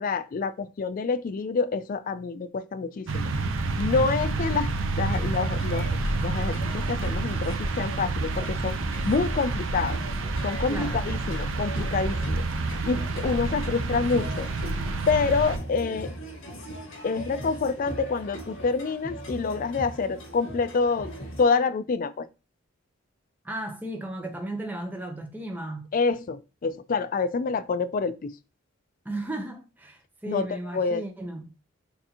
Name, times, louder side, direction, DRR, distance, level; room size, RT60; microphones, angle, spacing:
voice 1, 0.0-3.2 3.8-4.7 5.0-5.9 6.2-8.8 9.0-10.0 10.4-12.4 12.8-14.5 15.1-16.1 17.0-21.1 21.4-22.3 25.9-28.3 30.3-30.5 30.7-31.0, left 4 dB, 40° left, 0.3 m, -27 dB
sound 1, 3.1-15.6, right 3 dB, 70° right, 0.6 m, -29 dB
sound 2, 5.0-21.4, equal, 70° left, 1.5 m, -39 dB
voice 2, 10.7-11.0 23.4-25.9 29.0-31.5, right 1 dB, 10° right, 0.6 m, -35 dB
6.5 x 2.6 x 2.7 m
head